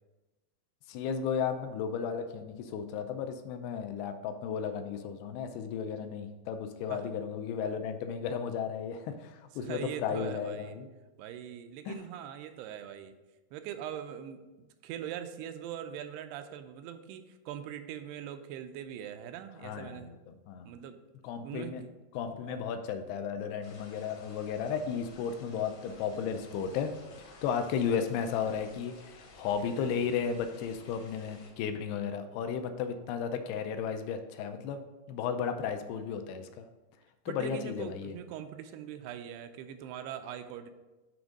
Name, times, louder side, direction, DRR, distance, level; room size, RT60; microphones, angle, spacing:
voice 1, 0.9-10.9 11.9-12.0 19.6-20.7 21.2-21.8 22.1-26.9 27.3-34.8 35.1-36.7 37.3-38.1, left 7 dB, 85° left, 7 dB, 2.6 m, -34 dB
voice 2, 9.6-10.8 11.2-13.2 13.5-20.1 20.6-21.0 21.4-21.9 22.5-22.7 37.3-40.7, right 9 dB, 85° right, 9 dB, 2.6 m, -42 dB
sound 1, 23.6-31.5, left 3 dB, 65° left, 1.6 m, -54 dB
9.0 x 3.5 x 5.2 m, 1.1 s
omnidirectional pair, 4.6 m